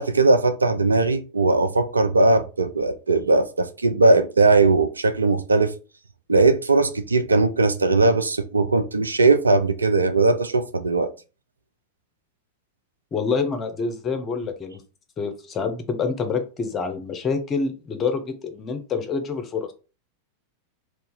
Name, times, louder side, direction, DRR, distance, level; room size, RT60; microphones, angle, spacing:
voice 1, 0.0-5.7 6.3-11.1, right 3 dB, 75° right, 0.4 m, -19 dB
voice 2, 13.1-14.8 15.2-19.7, left 5 dB, 25° left, 0.7 m, -27 dB
2.7 x 2.4 x 3.7 m
figure-of-eight pair, 90°, 0 cm